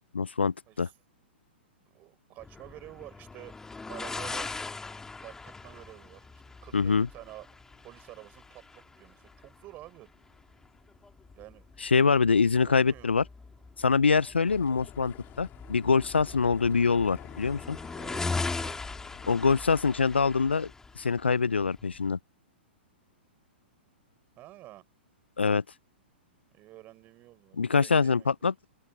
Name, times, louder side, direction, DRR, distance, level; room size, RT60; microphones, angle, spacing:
voice 1, 0.1-0.9 6.7-7.1 11.8-13.2 13.8-17.8 19.3-20.7 21.0-22.2 25.4-25.6 27.6-28.5, left 5 dB, 80° left, 0.5 m, -24 dB
voice 2, 1.8-3.6 3.9-4.5 5.2-6.3 6.6-7.5 7.8-10.1 11.4-11.7 12.6-13.1 16.3-16.4 18.0-18.8 24.4-24.8 26.5-28.3, right 16 dB, 30° right, 4.8 m, -49 dB
sound 1, 2.4-22.1, left 3 dB, 10° left, 2.2 m, -40 dB
sound 2, 14.5-19.5, left 17 dB, 30° left, 4.2 m, -50 dB
open air
figure-of-eight pair, 110°, 6 cm